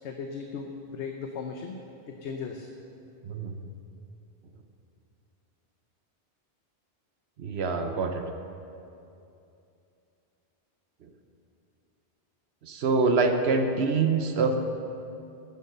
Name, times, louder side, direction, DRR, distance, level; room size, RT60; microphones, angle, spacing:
voice 1, 0.0-1.8 2.1-2.7, left 5 dB, 90° left, 4 dB, 1.0 m, -37 dB
voice 2, 7.4-8.2 12.6-14.6, right 4 dB, 70° right, 6 dB, 1.0 m, -25 dB
11.0 x 8.1 x 6.6 m, 2.7 s
omnidirectional pair, 1.1 m